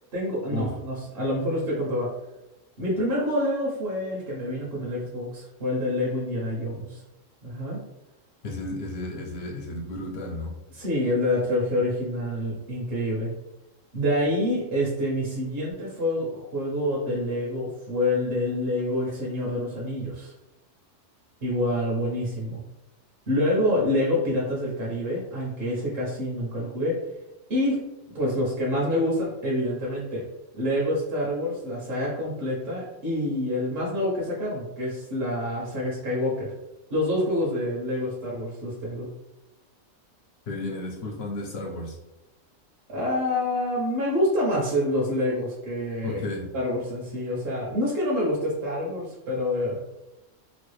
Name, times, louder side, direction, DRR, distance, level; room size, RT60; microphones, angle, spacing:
voice 1, 0.1-2.1 2.8-7.0 7.4-7.8 10.7-13.3 13.9-20.3 21.4-22.6 23.3-27.0 27.5-27.8 28.1-30.2 30.5-36.5 36.9-39.1 42.9-49.8, left 1 dB, 55° right, -5 dB, 1.0 m, -27 dB
voice 2, 8.4-10.5 40.5-42.0 46.0-46.5, left 2 dB, 60° left, 1 dB, 0.7 m, -33 dB
3.0 x 2.4 x 3.1 m, 0.97 s
omnidirectional pair, 1.3 m